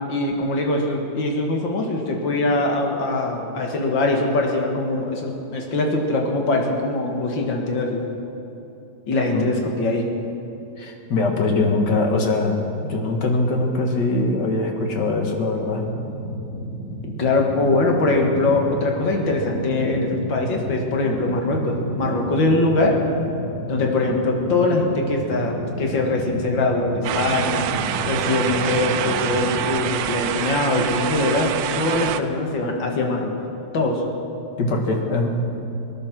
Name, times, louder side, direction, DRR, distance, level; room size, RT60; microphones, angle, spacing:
voice 1, 0.1-8.0 9.1-10.1 17.0-22.9 23.7-27.7 28.0-33.3 33.7-34.0, left 2 dB, 90° left, 1 dB, 2.4 m, -22 dB
voice 2, 10.8-15.8 34.6-35.3, left 2 dB, 65° left, 2 dB, 2.1 m, -22 dB
sound 1, 15.8-29.6, right 1 dB, 45° left, 4.7 m, -32 dB
sound 2, 27.0-32.2, right 9 dB, 80° right, 1.4 m, -26 dB
19.0 x 11.0 x 6.1 m, 2.9 s
omnidirectional pair, 2.0 m